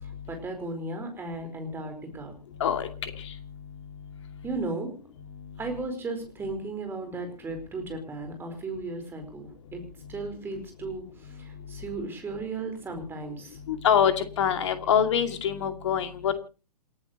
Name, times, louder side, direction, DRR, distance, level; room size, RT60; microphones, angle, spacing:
voice 1, 0.0-2.3 4.4-4.9 5.6-9.8 10.1-13.6, right 3 dB, 10° right, 5 dB, 4.5 m, -35 dB
voice 2, 2.6-3.3 13.7-16.3, left 8 dB, 45° left, 7 dB, 2.5 m, -25 dB
28.5 x 11.0 x 3.1 m, 0.35 s
figure-of-eight pair, 120°, 20 cm